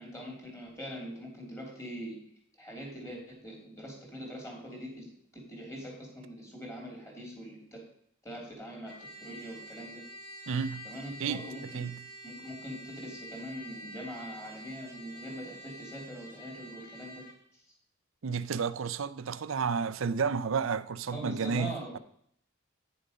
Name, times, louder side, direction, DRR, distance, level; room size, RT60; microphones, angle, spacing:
voice 1, 0.0-2.2 2.6-5.1 5.3-7.8 8.2-10.0 10.8-11.8 12.2-17.2 17.5-17.6 21.1-22.0, equal, 15° left, 3.1 m, -43 dB
Trumpet, 8.8-17.4, right 1 dB, 50° left, 3.0 m, -47 dB
voice 2, 10.5-10.9 11.2-11.5 11.7-12.0 18.2-22.0, right 5 dB, 70° right, 0.5 m, -31 dB
9.6 x 6.8 x 5.2 m
head